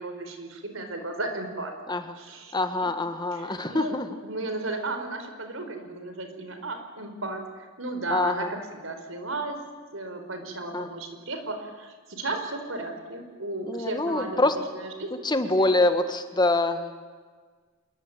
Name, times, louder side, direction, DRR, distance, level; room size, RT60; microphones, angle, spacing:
voice 1, 0.0-1.7 2.1-2.5 2.8-2.9 3.3-3.9 4.2-9.6 9.9-15.1 15.6-15.7, right 2 dB, 75° right, 6 dB, 4.9 m, -34 dB
voice 2, 2.5-4.1 8.1-8.5 10.7-10.9 13.6-14.5 15.2-16.9, left 2 dB, 20° left, 8 dB, 1.7 m, -25 dB
27.0 x 23.0 x 9.0 m, 1.5 s
head